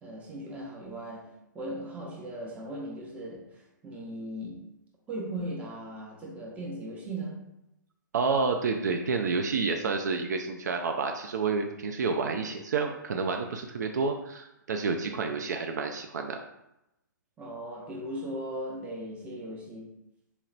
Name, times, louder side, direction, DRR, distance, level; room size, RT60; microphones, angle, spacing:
voice 1, 0.0-4.7 5.1-7.4 15.1-15.2 17.4-19.9, right 1 dB, 10° right, -2 dB, 0.8 m, -38 dB
voice 2, 8.1-16.4, right 4 dB, 60° right, 4 dB, 0.4 m, -29 dB
4.2 x 2.9 x 2.4 m, 0.86 s
figure-of-eight pair, 120°, 11 cm